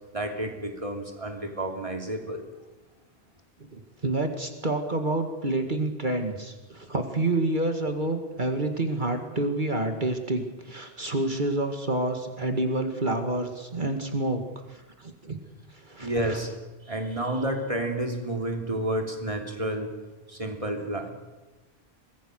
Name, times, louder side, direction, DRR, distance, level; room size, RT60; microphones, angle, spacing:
voice 1, 0.1-2.5 16.0-16.5 16.9-19.9 20.3-21.1, right 1 dB, 30° right, 3 dB, 3.2 m, -30 dB
voice 2, 3.7-14.4 14.7-15.4 15.9-16.4, right 2 dB, 50° right, 5 dB, 2.2 m, -28 dB
25.0 x 20.5 x 6.6 m, 1.1 s
omnidirectional pair, 1.1 m